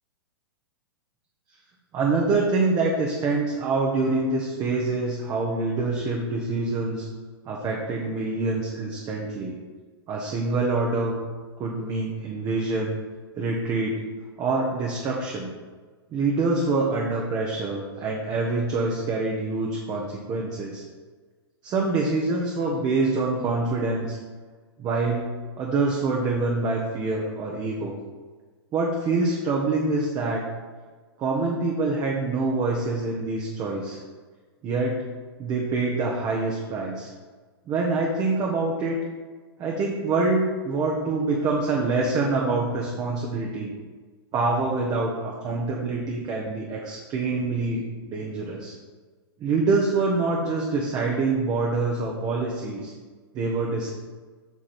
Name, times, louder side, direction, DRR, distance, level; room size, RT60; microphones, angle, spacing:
voice 1, 1.9-7.1 7.5-9.5 10.1-11.2 11.6-12.9 13.3-14.0 14.4-15.5 16.1-20.8 21.6-24.2 24.8-25.3 25.6-28.0 28.7-30.4 31.2-34.0 34.6-35.0 35.4-37.1 37.7-39.0 39.6-43.7 44.3-48.7 49.4-52.9 53.3-53.9, right 3 dB, 30° right, -1 dB, 1.2 m, -25 dB
8.3 x 5.9 x 4.4 m, 1.5 s
hypercardioid pair, 130°, 13 cm